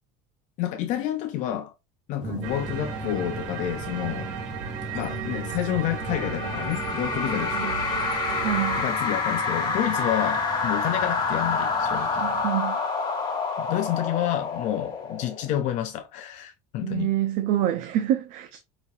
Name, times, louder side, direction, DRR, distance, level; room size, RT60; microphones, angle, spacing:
voice 1, 0.6-1.7 2.1-4.3 4.9-7.8 8.8-12.3 13.6-17.1, left 12 dB, 50° left, 0.6 m, -29 dB
sound 1, 2.2-12.5, equal, 5° right, 0.7 m, -40 dB
voice 2, 2.2-2.5 7.5-7.8 8.4-8.8 12.2-12.8 16.8-18.6, right 12 dB, 55° right, 0.5 m, -27 dB
sound 2, 2.4-8.8, right 7 dB, 85° right, 0.9 m, -35 dB
sound 3, 6.0-15.6, left 4 dB, 30° left, 1.5 m, -28 dB
5.0 x 2.7 x 2.9 m
cardioid pair, 140°, 16 cm